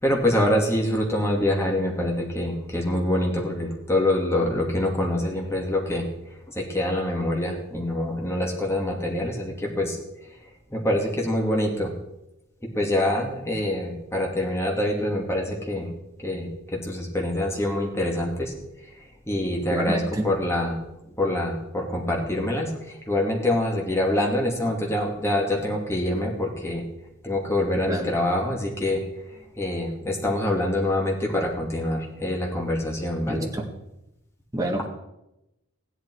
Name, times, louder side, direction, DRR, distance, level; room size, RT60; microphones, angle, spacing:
voice 1, 0.0-6.1 6.5-10.0 10.7-11.9 12.7-15.9 16.2-18.5 19.3-20.8 21.2-26.8 27.2-29.1 29.4-33.5, left 1 dB, 10° left, -1 dB, 2.6 m, -25 dB
voice 2, 19.7-20.2 27.9-28.1 33.3-33.6 34.5-34.8, right 1 dB, 15° right, 0 dB, 1.9 m, -28 dB
15.5 x 11.5 x 4.8 m, 0.88 s
head